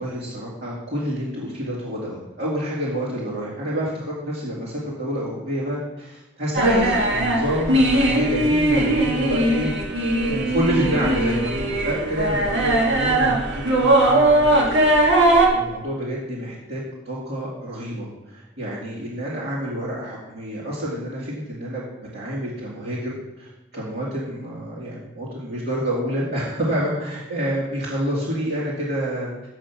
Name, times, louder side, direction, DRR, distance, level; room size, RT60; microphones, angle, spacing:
voice 1, 0.0-21.8 22.1-29.3, equal, 55° right, -7 dB, 2.4 m, -28 dB
sound 1, 6.5-15.5, right 1 dB, 75° right, 2.1 m, -19 dB
7.8 x 7.7 x 5.9 m, 1.0 s
head